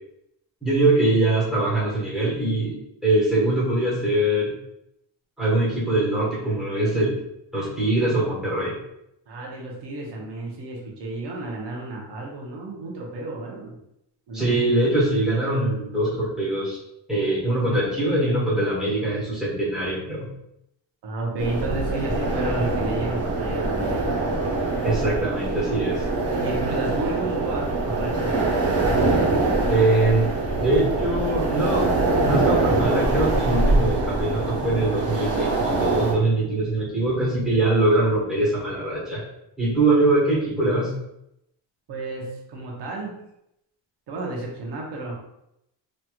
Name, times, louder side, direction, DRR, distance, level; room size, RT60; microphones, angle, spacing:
voice 1, 0.6-2.7 3.0-4.5 5.4-7.2 7.5-8.8 14.3-16.8 17.1-20.3 24.8-26.1 29.7-39.2 39.6-40.9, right 2 dB, ahead, -9 dB, 1.2 m, -22 dB
voice 2, 9.3-13.8 14.3-14.6 21.0-24.2 26.3-28.7 41.9-43.2 44.1-45.1, right 2 dB, 70° right, -2 dB, 1.0 m, -31 dB
sound 1, 21.4-36.1, right 2 dB, 35° right, 0.6 m, -24 dB
3.2 x 2.8 x 2.3 m, 0.81 s
cardioid pair, 160°, 43 cm